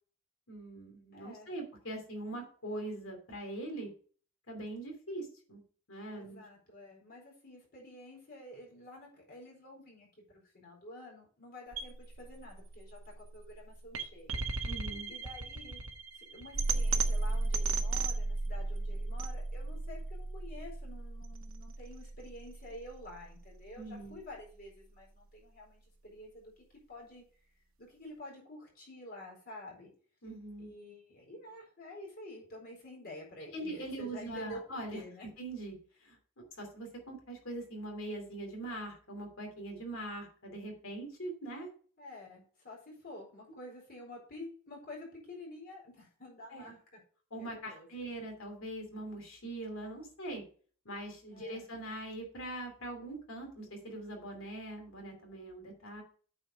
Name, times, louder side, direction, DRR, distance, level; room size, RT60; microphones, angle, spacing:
voice 1, 0.5-3.9 4.5-5.6 5.9-6.4 14.6-15.1 23.8-24.2 30.2-30.7 33.5-35.0 35.4-35.8 36.0-41.7 46.5-46.8 47.3-50.4 50.8-56.0, right 1 dB, 65° left, 3 dB, 2.8 m, -42 dB
voice 2, 1.1-1.5 6.1-10.1 10.3-14.4 15.1-15.8 16.1-26.5 26.9-27.2 27.8-29.9 30.6-35.3 42.0-47.0 47.4-47.9 51.3-51.6, left 1 dB, 45° left, -2 dB, 4.4 m, -49 dB
sound 1, 11.7-23.8, right 3 dB, 65° right, 1.0 m, -35 dB
8.7 x 4.8 x 5.0 m, 0.43 s
head